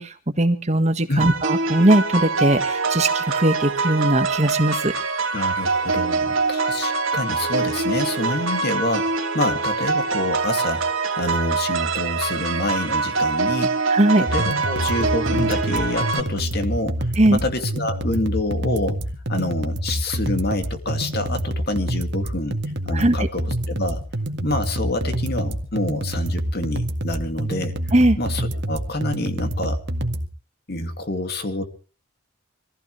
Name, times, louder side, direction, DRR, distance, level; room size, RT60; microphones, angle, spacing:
voice 1, 0.0-4.9 13.9-14.2 17.2-17.4 22.9-23.3 27.9-28.2, right 1 dB, 35° right, 8 dB, 1.6 m, -19 dB
sound 1, 1.2-16.2, right 4 dB, 75° right, 2.6 m, -24 dB
voice 2, 5.3-10.8 11.1-13.9 14.2-19.0 19.3-22.6 22.9-24.0 24.4-27.8 28.2-29.8 30.7-31.7, left 1 dB, 50° left, 7 dB, 2.4 m, -27 dB
sound 2, 14.3-30.3, right 1 dB, 55° right, 1.9 m, -27 dB
25.0 x 15.5 x 3.3 m, 0.36 s
head